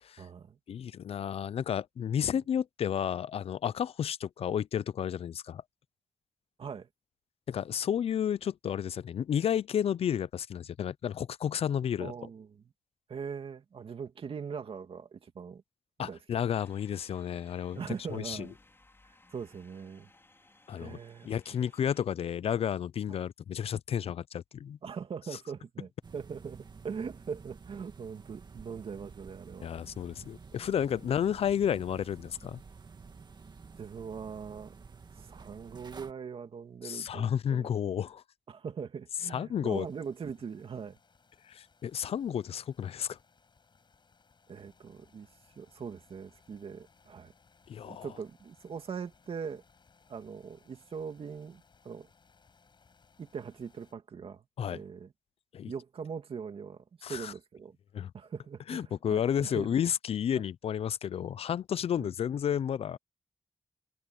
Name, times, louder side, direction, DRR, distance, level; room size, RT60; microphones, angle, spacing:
voice 1, 0.2-0.6 6.6-6.9 12.0-12.7 13.1-15.6 16.0-16.4 17.7-18.6 19.3-20.1 20.8-21.7 24.8-29.7 33.8-34.7 35.2-37.7 38.5-41.0 44.5-45.3 45.6-47.3 47.9-49.6 50.1-52.1 53.2-54.4 54.7-55.1 55.6-57.8 58.1-59.8 62.0-62.1, right 6 dB, 70° right, 2.5 m, -41 dB
voice 2, 0.7-5.6 7.5-12.1 16.0-17.8 18.1-18.5 20.7-21.0 21.3-24.8 29.6-32.6 36.8-38.2 39.3-39.9 41.5-43.2 47.7-48.1 54.6-54.8 55.5-55.7 57.0-57.3 57.9-58.1 58.7-63.0, left 9 dB, 80° left, 0.5 m, -32 dB
sound 1, 16.5-22.1, left 2 dB, 25° left, 4.8 m, -62 dB
sound 2, 26.0-36.1, right 5 dB, 45° right, 2.1 m, -51 dB
sound 3, 39.7-53.9, left 5 dB, 50° left, 6.5 m, -65 dB
wide cardioid pair, 95°, 10 cm